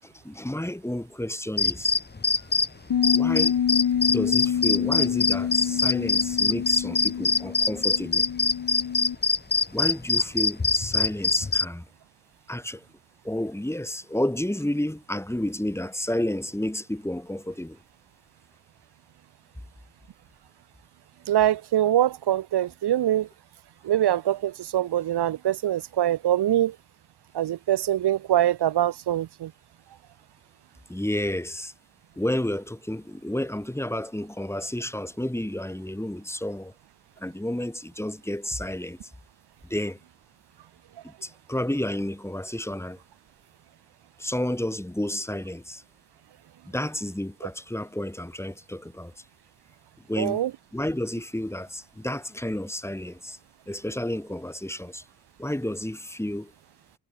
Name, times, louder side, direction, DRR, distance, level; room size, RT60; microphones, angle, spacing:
voice 1, 0.0-1.9 3.0-3.6 4.1-8.2 9.7-11.9 12.5-12.8 13.2-17.8 30.9-31.7 32.2-36.7 37.2-39.0 39.7-40.0 41.0-43.0 44.2-45.8 46.6-49.1 50.0-50.4 50.7-53.4 53.7-55.0 55.4-56.5, left 1 dB, 5° left, 5.5 m, -31 dB
sound 1, 1.6-2.7 3.0-11.6, left 4 dB, 25° left, 1.6 m, -23 dB
Bass guitar, 2.9-9.2, left 8 dB, 65° left, 2.4 m, -27 dB
voice 2, 21.3-23.3 23.8-26.7 27.3-29.5 50.2-50.5, right 12 dB, 90° right, 1.1 m, -23 dB
cardioid pair, 100°, 39 cm